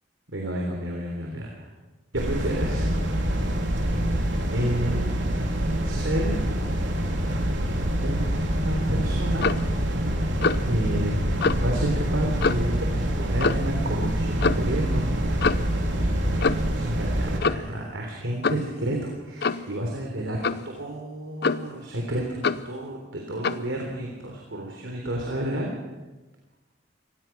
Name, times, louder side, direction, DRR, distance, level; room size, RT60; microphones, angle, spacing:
voice 1, 0.3-1.7 2.1-2.9 4.5-5.1 5.8-6.4 8.0-9.5 10.7-11.2 11.6-15.0 16.7-25.7, right 1 dB, 85° right, 0 dB, 3.7 m, -30 dB
sound 1, 2.1-17.4, right 1 dB, 70° right, 3.4 m, -26 dB
Clock, 9.4-9.7 10.4-10.7 11.4-11.6 12.4-12.7 13.4-13.7 14.4-14.7 15.4-15.7 16.4-16.8 17.4-17.7 18.4-18.7 19.4-19.7 20.4-20.7 21.4-21.8 22.4-22.7 23.4-23.7, left 4 dB, 60° left, 0.8 m, -25 dB
25.0 x 19.0 x 6.1 m, 1.1 s
head